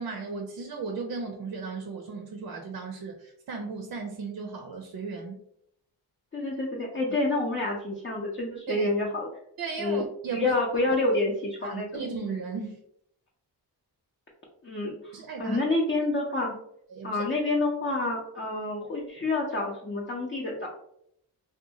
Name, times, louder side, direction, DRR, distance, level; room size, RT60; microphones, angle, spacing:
voice 1, 0.0-5.4 8.7-8.9 9.6-10.5 11.6-12.8 15.1-15.6 16.9-17.2, right 4 dB, 50° right, 3 dB, 0.5 m, -36 dB
voice 2, 6.3-9.3 9.8-10.0 10.3-12.0 14.6-16.6 17.0-20.7, left 2 dB, 30° left, -4 dB, 0.6 m, -28 dB
2.6 x 2.3 x 2.7 m, 0.72 s
cardioid pair, 75°, 42 cm